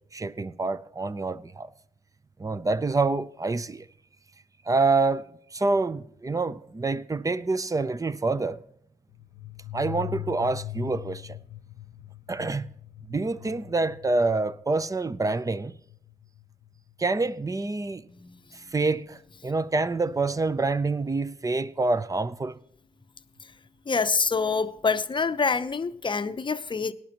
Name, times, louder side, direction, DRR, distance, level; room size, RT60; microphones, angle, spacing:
voice 1, 0.1-1.7 2.4-3.9 4.7-8.6 9.7-11.4 12.3-12.7 13.1-15.7 17.0-18.0 18.5-22.6, right 3 dB, 20° right, 0.6 m, -27 dB
sound 1, 9.1-17.5, left 18 dB, 90° left, 0.4 m, -42 dB
voice 2, 23.9-26.9, left 4 dB, 30° left, 0.7 m, -26 dB
18.0 x 11.0 x 3.0 m
cardioid pair, 70°, 17 cm